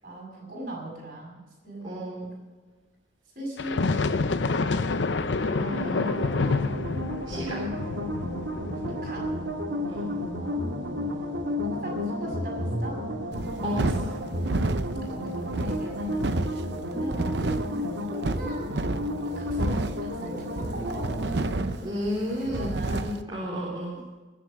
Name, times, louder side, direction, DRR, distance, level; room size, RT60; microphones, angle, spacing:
voice 1, 0.0-2.0 3.3-3.8 9.0-9.3 10.3-11.0 11.6-13.0 15.1-16.3 16.9-21.9 22.1-23.2 23.9-24.2, right 1 dB, 45° right, -1 dB, 6.4 m, -40 dB
voice 2, 1.8-2.3 5.4-6.5 7.3-7.6 9.9-10.1 13.6-14.1 21.8-24.0, equal, 25° right, -6 dB, 3.4 m, -33 dB
sound 1, 3.6-14.7, left 3 dB, 70° left, 0.7 m, -30 dB
sound 2, 5.6-21.5, left 1 dB, 85° right, 1.7 m, -32 dB
sound 3, 13.3-23.2, right 2 dB, 60° right, 0.7 m, -31 dB
20.0 x 7.6 x 6.7 m, 1.3 s
head